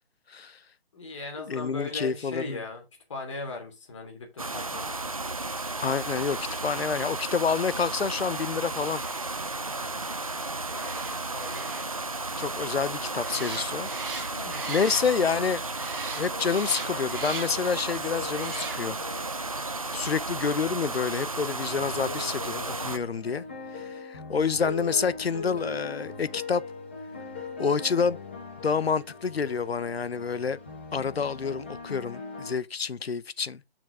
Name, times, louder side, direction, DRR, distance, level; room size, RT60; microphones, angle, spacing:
voice 1, 0.9-2.8 3.1-5.1 9.8-10.1 10.7-11.9 14.3-14.6, left 3 dB, 30° left, 2.8 m, -39 dB
voice 2, 1.5-2.6 5.8-9.0 12.4-13.9 14.7-15.6 16.2-19.0 19.9-23.4 23.7-26.6 27.6-28.2 28.6-30.6 30.9-33.6, left 6 dB, 75° left, 0.8 m, -28 dB
sound 1, 4.4-23.0, right 3 dB, 35° right, 0.5 m, -33 dB
sound 2, 5.7-15.4 15.7-17.7 18.3-19.1 19.5-19.6, right 4 dB, 60° right, 1.4 m, -43 dB
sound 3, 16.3-19.9 21.7-32.5, left 3 dB, 10° left, 0.9 m, -40 dB
7.4 x 6.4 x 3.7 m
figure-of-eight pair, 170°, 31 cm